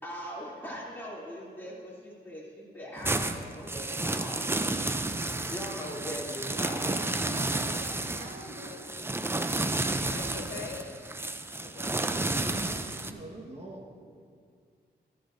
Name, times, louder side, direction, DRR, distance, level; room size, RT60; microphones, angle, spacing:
voice 1, 0.0-4.4 5.5-7.0, equal, 10° left, -6 dB, 2.8 m, -40 dB
sound 1, 3.0-13.1, right 2 dB, 15° right, 0.4 m, -31 dB
voice 2, 5.3-7.1 12.1-13.9, right 1 dB, 35° right, -2 dB, 1.3 m, -46 dB
voice 3, 6.7-8.8, right 1 dB, 80° right, 0 dB, 1.5 m, -44 dB
voice 4, 8.6-9.0 10.0-11.0 11.5-12.0, left 5 dB, 85° left, 2 dB, 1.0 m, -43 dB
13.5 x 11.5 x 2.6 m, 2.1 s
wide cardioid pair, 105°, 18 cm